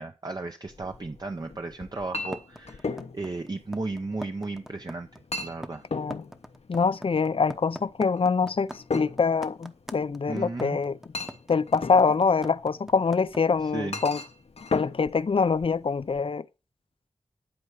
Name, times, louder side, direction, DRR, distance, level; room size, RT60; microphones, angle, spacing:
voice 1, 0.0-5.8 10.3-10.8 13.6-14.0, right 3 dB, 40° right, 0.7 m, -35 dB
Chink clink, 0.7-16.2, left 3 dB, 70° left, 0.8 m, -39 dB
sound 1, 2.3-13.4, equal, 5° right, 0.8 m, -41 dB
voice 2, 5.9-6.2 6.7-11.0 11.5-14.2 14.7-16.4, left 5 dB, 55° left, 0.5 m, -24 dB
11.5 x 4.7 x 6.6 m
wide cardioid pair, 85°, 11 cm